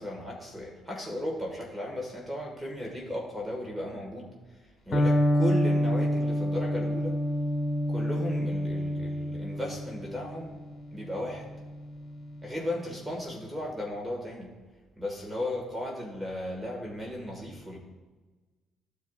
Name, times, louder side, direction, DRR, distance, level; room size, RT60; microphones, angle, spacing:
voice 1, 0.0-7.2 7.9-10.6 10.9-11.5 12.4-14.5 15.0-17.8, left 1 dB, 5° right, -2 dB, 1.6 m, -35 dB
Electric guitar, 4.9-12.8, equal, 40° left, 1.3 m, -28 dB
13.5 x 4.7 x 2.4 m, 1.3 s
cardioid pair, 100°, 0 cm